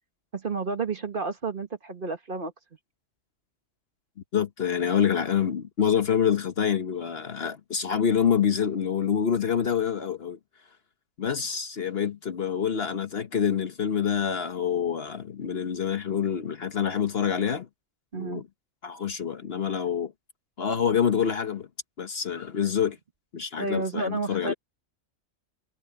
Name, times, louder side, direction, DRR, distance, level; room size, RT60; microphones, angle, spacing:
voice 1, 0.3-2.5 18.1-18.4 23.6-24.5, right 3 dB, 40° right, 1.6 m, -31 dB
voice 2, 4.3-10.4 11.2-17.7 18.1-18.5 18.8-20.1 20.6-21.7 22.0-23.0 23.3-24.5, left 7 dB, 50° left, 1.1 m, -26 dB
omnidirectional pair, 1.4 m